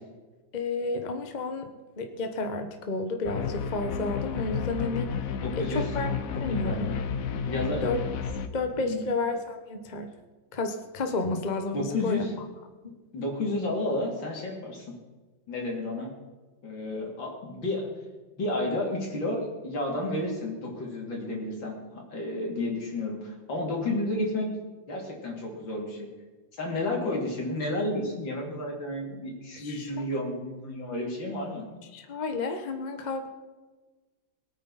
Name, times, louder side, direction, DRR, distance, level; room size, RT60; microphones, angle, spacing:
voice 1, 0.5-6.1 6.4-7.0 7.7-8.0 8.5-10.1 10.5-12.2 27.0-27.1 29.6-29.9 31.9-33.3, left 3 dB, 30° left, 6 dB, 1.1 m, -31 dB
sound 1, 3.2-8.5, left 6 dB, 60° left, 1.1 m, -31 dB
voice 2, 5.4-5.9 6.3-7.0 7.5-7.8 8.8-9.0 11.7-12.3 13.1-14.9 15.5-16.1 16.6-17.9 18.4-24.5 24.9-26.1 26.6-31.6, left 2 dB, 80° left, -1 dB, 3.8 m, -31 dB
23.0 x 9.1 x 4.2 m, 1.3 s
omnidirectional pair, 2.0 m